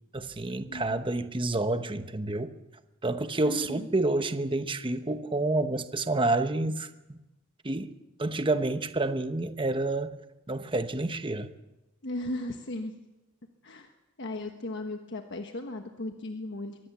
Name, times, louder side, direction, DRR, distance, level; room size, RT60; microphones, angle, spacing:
voice 1, 0.1-2.5 3.0-7.2 7.6-7.9 8.2-10.2 10.5-11.5, right 2 dB, 25° right, 0.9 m, -29 dB
voice 2, 0.7-1.0 3.4-3.9 12.0-13.0 13.6-13.9 14.2-16.8, left 1 dB, 60° left, 1.4 m, -36 dB
23.0 x 17.5 x 7.1 m
head